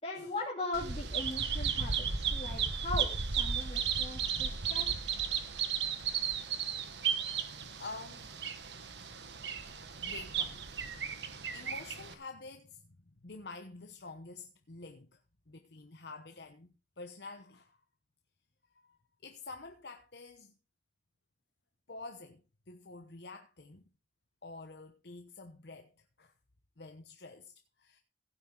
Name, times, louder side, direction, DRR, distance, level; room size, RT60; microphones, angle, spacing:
voice 1, 0.0-5.0, left 2 dB, 35° left, 2.9 m, -40 dB
Bird vocalization bird call bird song, 0.7-12.1, right 7 dB, 70° right, 1.3 m, -34 dB
voice 2, 7.1-7.5 7.8-8.3 10.0-10.7 11.0-15.1 15.5-17.8 18.7-20.5 21.9-22.4 22.7-23.9 24.4-25.9 26.2-26.3 26.8-27.5 27.8-28.0, left 3 dB, 65° left, 1.0 m, -48 dB
16.5 x 8.9 x 3.9 m
head